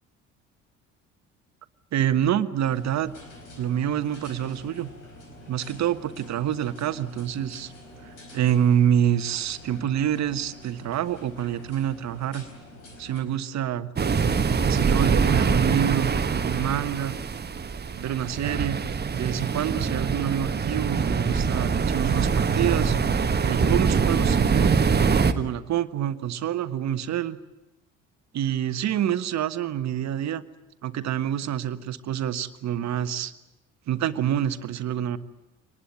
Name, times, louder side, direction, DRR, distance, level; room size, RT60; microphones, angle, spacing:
voice 1, 1.9-3.1 3.6-4.9 5.5-7.7 8.0-12.5 13.0-13.9 14.6-17.1 17.8-18.8 19.1-23.0 23.4-24.8 25.3-27.4 28.3-30.4 30.8-33.3 33.9-35.2, right 10 dB, 50° right, 13 dB, 1.3 m, -27 dB
sound 1, 2.6-13.2, left 1 dB, 85° left, 4.7 m, -47 dB
sound 2, 14.0-25.3, right 5 dB, 25° right, 1.4 m, -24 dB
24.5 x 19.5 x 9.7 m, 0.93 s
figure-of-eight pair, 55°, 37 cm